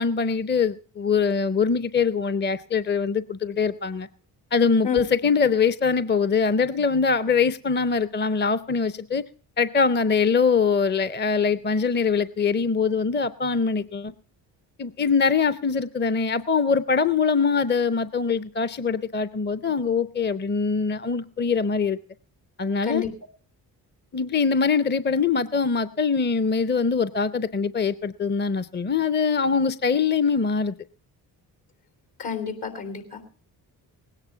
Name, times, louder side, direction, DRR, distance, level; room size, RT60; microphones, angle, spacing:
voice 1, 0.0-4.1 4.5-9.2 9.6-14.1 14.8-22.0 22.6-23.0 24.1-30.7, left 5 dB, 25° left, 0.6 m, -23 dB
voice 2, 32.2-33.2, left 6 dB, 65° left, 3.6 m, -29 dB
18.5 x 9.8 x 5.6 m
supercardioid pair, 45°, 44 cm